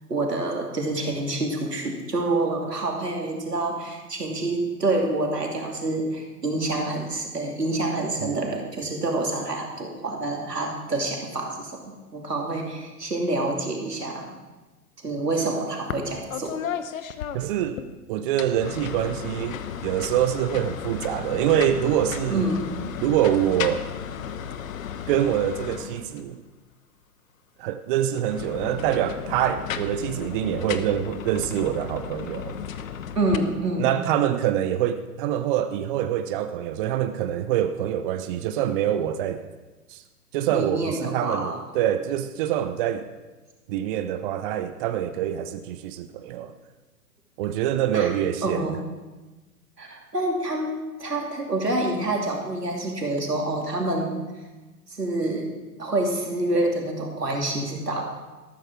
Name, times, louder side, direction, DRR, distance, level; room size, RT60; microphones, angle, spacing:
voice 1, 0.1-14.3 15.0-16.6 22.3-22.6 33.1-33.9 40.5-41.6 47.9-48.1 48.4-48.8 49.8-50.7 51.0-54.2 54.9-55.5 55.8-58.1, right 2 dB, 90° right, 0 dB, 2.8 m, -27 dB
sound 1, 15.9-16.1 16.3-17.9 18.3-26.3 28.1-33.4, left 8 dB, 60° left, 1.1 m, -34 dB
voice 2, 17.3-17.8 18.1-22.5 23.0-23.9 25.1-26.4 27.6-32.6 33.8-39.4 39.9-40.0 40.3-43.1 43.7-46.5 47.4-48.8, right 11 dB, 35° right, 10 dB, 0.7 m, -25 dB
13.5 x 13.0 x 4.7 m, 1.2 s
figure-of-eight pair, 110°, 46 cm